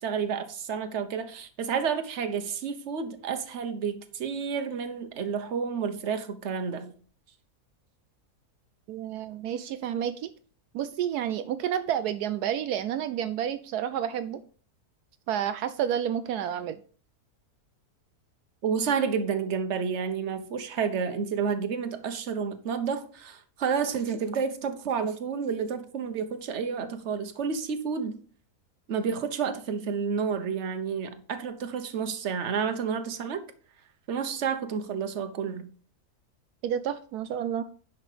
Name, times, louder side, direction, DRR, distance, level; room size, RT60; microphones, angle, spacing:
voice 1, 0.0-6.9 18.6-28.2 28.9-33.4 34.1-35.7, right 6 dB, 50° right, 1.3 m, -30 dB
voice 2, 8.9-10.3 10.7-14.4 15.3-16.8 36.6-37.6, right 9 dB, 80° right, 1.1 m, -30 dB
10.0 x 5.7 x 5.0 m
omnidirectional pair, 1.7 m